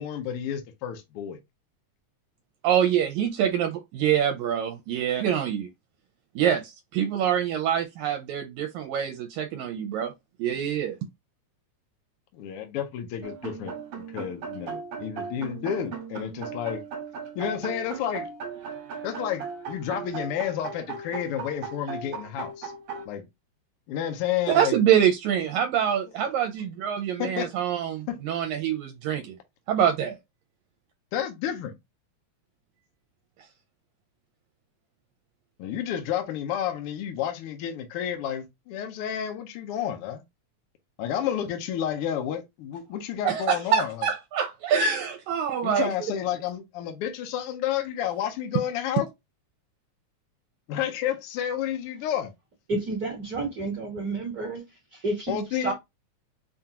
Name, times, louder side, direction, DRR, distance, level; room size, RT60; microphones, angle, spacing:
voice 1, 0.0-1.4 12.3-16.8 17.3-18.3 19.0-22.7 23.0-23.3 23.9-24.8 26.1-26.3 27.2-27.5 28.1-28.2 31.1-31.7 35.6-40.2 41.0-44.1 45.6-49.1 50.7-52.3 55.3-55.7, left 10 dB, 75° left, 1.3 m, -31 dB
voice 2, 2.6-5.7 6.4-10.1 10.4-11.0 24.5-29.3 29.7-30.2 43.2-45.9, right 9 dB, 80° right, 1.9 m, -25 dB
sound 1, 13.2-23.1, right 6 dB, 60° right, 1.9 m, -37 dB
voice 3, 52.7-55.7, right 3 dB, 45° right, 1.2 m, -31 dB
5.6 x 2.4 x 2.8 m
omnidirectional pair, 3.4 m